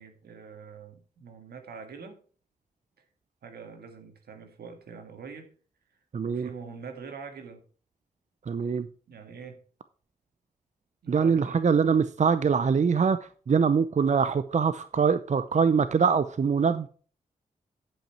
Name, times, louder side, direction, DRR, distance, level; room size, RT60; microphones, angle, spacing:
voice 1, 0.0-2.2 3.4-5.5 6.3-7.6 9.1-9.6 11.0-11.6, right 5 dB, 80° right, 1.8 m, -44 dB
voice 2, 6.1-6.5 8.5-8.9 11.1-16.9, right 6 dB, 50° right, 0.6 m, -23 dB
10.5 x 5.6 x 4.4 m
supercardioid pair, 45°, 16 cm